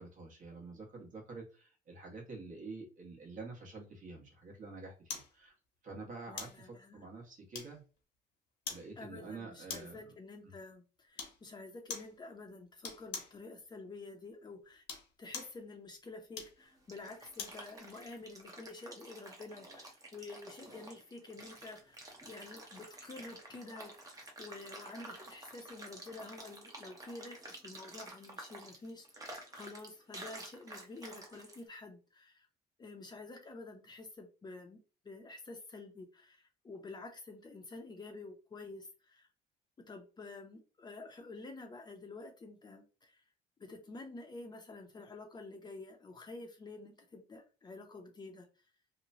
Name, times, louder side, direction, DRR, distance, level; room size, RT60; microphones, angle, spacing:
voice 1, 0.0-5.5 5.8-7.8 8.7-10.0 10.4-10.5, right 3 dB, 50° right, -1 dB, 1.2 m, -48 dB
sound 1, 5.1-5.3 6.4-6.6 7.5-8.0 8.7-8.9 9.7-10.0 11.2-11.4 11.9-12.1 12.8-13.4 14.7-15.6 16.3-17.6 18.1-18.2, left 6 dB, 80° left, 1.0 m, -43 dB
voice 2, 6.3-7.0 9.0-14.8 15.2-32.5 32.8-34.8 35.0-39.3 39.9-43.2 43.6-48.5, left 3 dB, 25° left, 3 dB, 0.6 m, -49 dB
sound 2, 16.6-31.6, right 2 dB, 20° right, 0.7 m, -51 dB
3.0 x 2.1 x 2.6 m, 0.34 s
cardioid pair, 110°, 17 cm